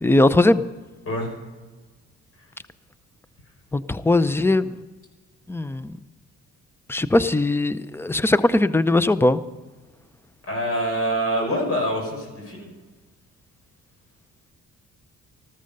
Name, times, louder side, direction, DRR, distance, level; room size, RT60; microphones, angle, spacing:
voice 1, 0.0-0.6 3.7-4.7 5.5-5.9 6.9-9.4, left 2 dB, 10° left, 15 dB, 0.6 m, -19 dB
voice 2, 10.4-12.7, equal, 50° left, 1 dB, 6.2 m, -25 dB
14.0 x 14.0 x 5.4 m, 1.3 s
cardioid pair, 90°, 30 cm